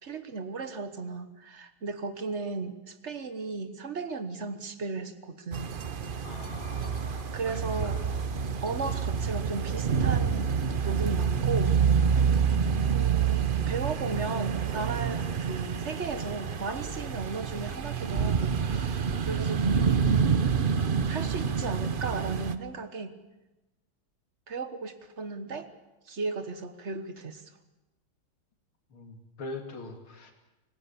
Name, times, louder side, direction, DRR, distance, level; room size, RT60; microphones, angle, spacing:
voice 1, 0.0-5.7 7.3-8.0 8.6-10.5 10.8-11.8 12.9-20.1 21.1-23.2 24.5-25.7 26.1-27.4, right 4 dB, 40° right, 10 dB, 1.3 m, -35 dB
sound 1, 5.5-22.6, right 6 dB, 70° right, 0.4 m, -27 dB
voice 2, 6.2-8.2 28.9-30.3, left 2 dB, 80° left, 4 dB, 3.1 m, -42 dB
25.5 x 18.5 x 7.0 m, 1.0 s
omnidirectional pair, 2.3 m